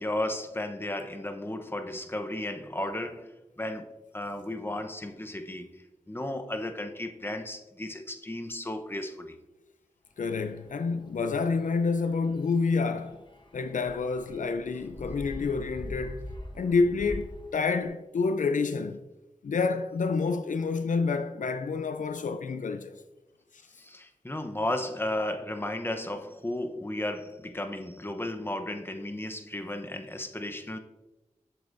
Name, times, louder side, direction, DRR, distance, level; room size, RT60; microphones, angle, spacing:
voice 1, 0.0-9.3 23.8-30.8, left 1 dB, 15° left, 0.8 m, -34 dB
voice 2, 10.2-13.2 13.5-16.3 16.5-19.0 19.4-23.0, left 4 dB, 75° left, 0.4 m, -28 dB
sound 1, 10.2-17.8, left 1 dB, 35° left, 1.1 m, -44 dB
7.8 x 7.1 x 2.6 m
cardioid pair, 45°, 13 cm